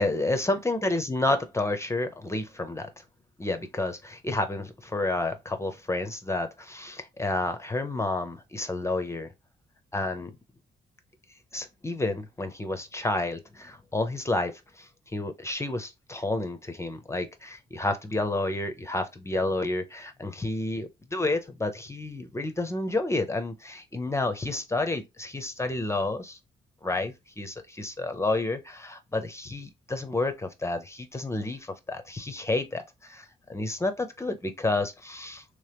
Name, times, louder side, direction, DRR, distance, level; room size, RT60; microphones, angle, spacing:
voice 1, 0.0-2.9 3.4-9.3 9.9-10.4 11.5-26.4 26.8-35.4, left 2 dB, 15° left, 0.5 m, -30 dB
3.1 x 2.8 x 3.3 m
cardioid pair, 95°, 18 cm